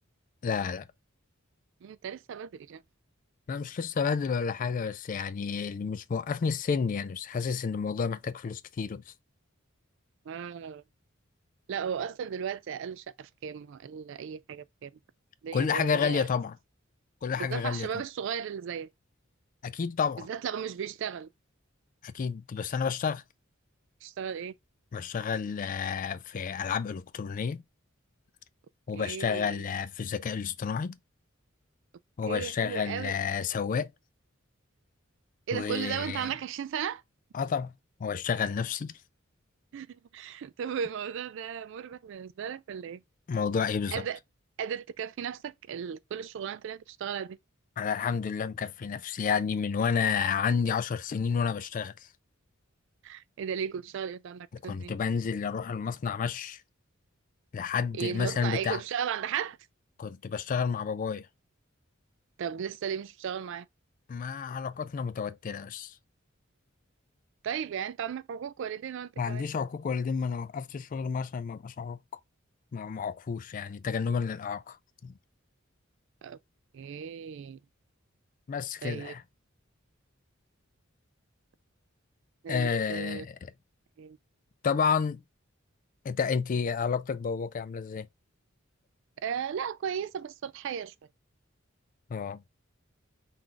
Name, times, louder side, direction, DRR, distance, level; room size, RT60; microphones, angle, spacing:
voice 1, 0.4-0.9 3.5-9.0 15.5-16.5 17.2-17.9 19.6-20.3 22.0-23.2 24.9-27.6 28.9-31.0 32.2-33.9 35.5-36.3 37.3-37.7 38.0-39.0 43.3-44.0 47.8-51.9 54.6-56.6 57.5-58.8 60.0-61.3 64.1-65.9 69.2-72.0 72.7-74.8 75.0-75.1 78.5-79.2 82.5-83.5 84.6-85.2 86.0-88.1 92.1-92.4, left 6 dB, 40° left, 0.3 m, -30 dB
voice 2, 1.8-2.8 10.3-10.8 11.7-15.0 15.4-16.3 17.4-18.9 20.2-21.3 24.0-24.5 28.9-29.7 32.3-33.2 35.5-37.0 39.7-43.0 43.9-44.2 44.6-47.4 53.0-55.0 57.9-59.6 62.4-63.7 67.4-69.4 76.2-76.4 76.7-77.6 78.8-79.1 82.4-83.3 84.0-84.2 89.2-90.9, right 7 dB, 65° right, 0.3 m, -35 dB
3.8 x 2.5 x 4.5 m
head